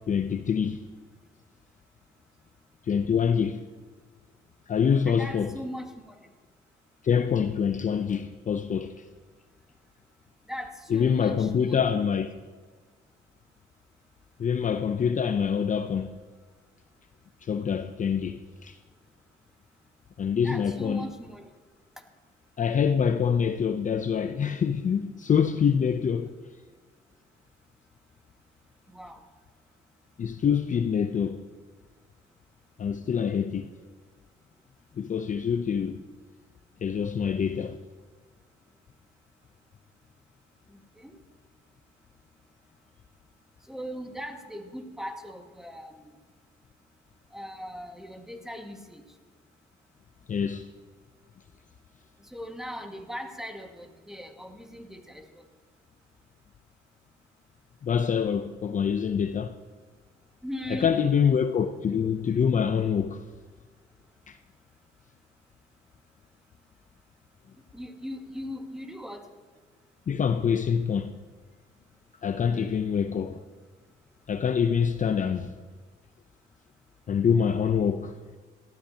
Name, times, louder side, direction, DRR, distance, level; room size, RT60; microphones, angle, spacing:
voice 1, 0.1-0.8 2.8-3.6 4.7-5.5 7.0-9.0 10.9-12.4 14.4-16.1 17.4-18.8 20.2-21.1 22.6-26.3 30.2-31.4 32.8-33.7 35.0-36.0 36.8-37.8 50.3-50.7 57.8-59.6 60.7-63.2 64.3-64.4 70.1-71.1 72.2-73.4 74.3-75.5 77.1-78.1, left 7 dB, 40° left, 0.6 m, -25 dB
voice 2, 5.0-6.2 10.5-11.8 20.4-21.4 28.9-29.2 40.7-41.2 43.7-46.2 47.3-49.0 52.2-55.4 60.4-61.0 67.7-69.3 72.5-72.9, equal, ahead, 1.8 m, -39 dB
18.0 x 13.0 x 2.9 m
cardioid pair, 90°, 20 cm